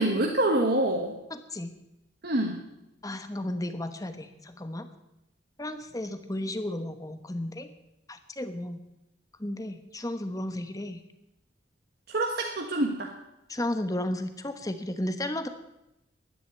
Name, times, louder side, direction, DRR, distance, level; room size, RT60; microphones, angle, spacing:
voice 1, 0.0-1.2 2.2-2.6 12.1-13.1, right 1 dB, 55° right, 1 dB, 1.4 m, -26 dB
voice 2, 1.3-1.7 3.0-4.9 5.6-7.7 8.1-8.8 9.4-11.0 13.5-15.5, left 1 dB, 20° left, 9 dB, 1.1 m, -33 dB
11.5 x 10.0 x 9.3 m, 0.91 s
head